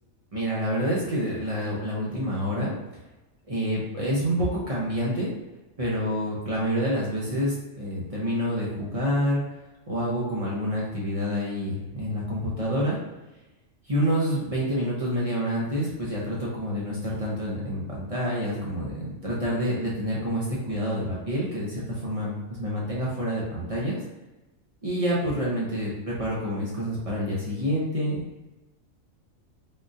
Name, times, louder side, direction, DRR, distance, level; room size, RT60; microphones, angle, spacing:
voice 1, 0.3-2.7 3.5-5.3 5.8-9.4 9.9-13.0 13.9-24.0 24.8-28.2, equal, 40° right, -6 dB, 0.5 m, -28 dB
3.6 x 2.4 x 2.6 m, 1.1 s
omnidirectional pair, 1.4 m